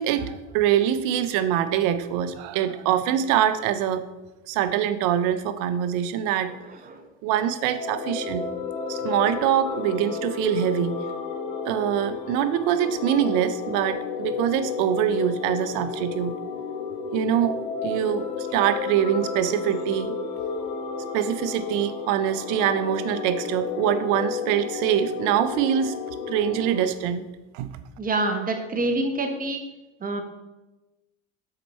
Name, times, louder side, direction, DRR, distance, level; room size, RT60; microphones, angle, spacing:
voice 1, 0.0-4.1 4.5-6.5 7.2-8.4 8.9-11.0 11.7-16.4 17.1-20.1 21.1-26.0 26.3-27.3 27.5-27.7, right 10 dB, 65° right, 12 dB, 0.7 m, -24 dB
voice 2, 6.7-7.0 28.0-29.6 30.0-30.2, right 2 dB, 25° right, 5 dB, 1.1 m, -26 dB
sound 1, 7.6-26.9, left 5 dB, 70° left, 0.9 m, -32 dB
6.6 x 4.5 x 4.2 m, 1.1 s
supercardioid pair, 95°, 33 cm